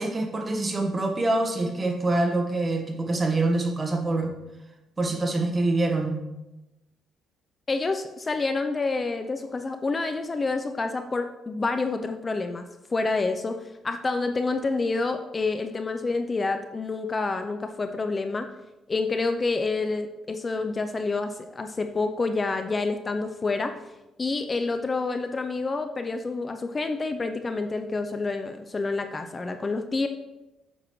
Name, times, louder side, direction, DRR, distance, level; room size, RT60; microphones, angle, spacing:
voice 1, 0.0-4.3 5.0-6.2, right 2 dB, 25° right, 3 dB, 1.3 m, -25 dB
voice 2, 7.7-18.5 18.9-23.8 24.2-30.1, left 3 dB, 30° left, 8 dB, 0.5 m, -28 dB
8.9 x 7.3 x 3.1 m, 0.98 s
cardioid pair, 100°, 0 cm